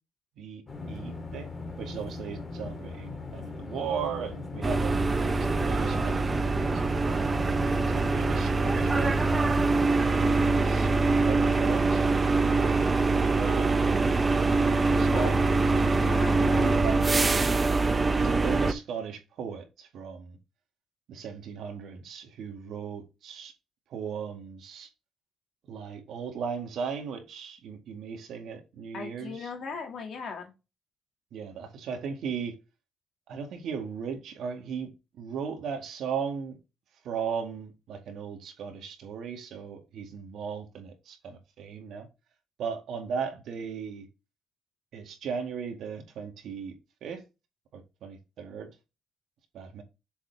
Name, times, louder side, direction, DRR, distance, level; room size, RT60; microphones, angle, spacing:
sound 1, 0.7-9.9, left 3 dB, 30° left, 2.2 m, -39 dB
voice 1, 0.9-1.5 1.8-6.6 7.1-7.6 7.9-9.2 10.1-10.9 11.2-12.1 12.6-12.9 13.1-13.7 14.9-15.4 16.5-17.0 18.2-20.4 21.1-23.5 23.9-24.9 25.7-29.5 31.3-32.6 33.3-34.9 35.2-36.6 37.0-42.1 42.6-44.1 44.9-46.7 47.0-47.2 47.7-48.7 49.5-49.8, right 6 dB, 75° right, 2.1 m, -37 dB
sound 2, 4.6-18.7, right 3 dB, 25° right, 0.8 m, -24 dB
voice 2, 14.9-15.5 16.0-16.8 28.9-30.5, left 5 dB, 60° left, 2.4 m, -38 dB
7.0 x 4.2 x 3.5 m
cardioid pair, 90°, 0 cm